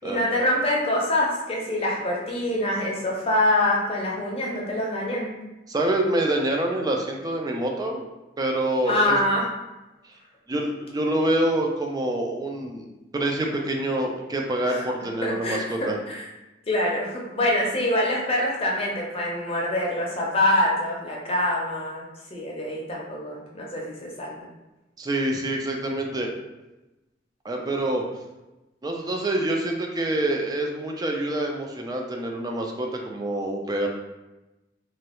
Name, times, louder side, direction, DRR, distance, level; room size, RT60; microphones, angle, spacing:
voice 1, 0.0-5.3 8.8-9.5 14.7-14.9 15.2-16.2 16.7-22.0 22.3-24.5, left 1 dB, 30° left, -3 dB, 0.6 m, -25 dB
voice 2, 5.7-8.0 8.4-9.2 10.5-12.8 13.1-16.0 25.0-26.3 27.4-28.0 28.8-33.9, right 1 dB, 20° right, 1 dB, 0.3 m, -26 dB
3.0 x 2.3 x 3.0 m, 1.0 s
head